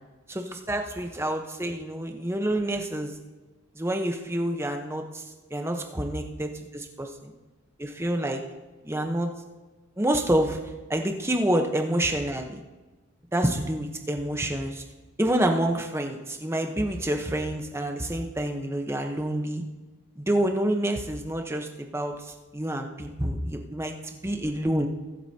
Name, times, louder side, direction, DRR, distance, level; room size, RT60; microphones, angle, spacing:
voice 1, 0.3-3.1 3.7-5.2 5.5-7.3 7.8-8.4 8.8-9.3 10.0-10.6 10.9-12.6 13.3-14.8 15.2-19.6 20.2-23.9 24.2-24.9, right 1 dB, 10° right, 4 dB, 0.9 m, -28 dB
21.5 x 7.9 x 2.9 m, 1.2 s
head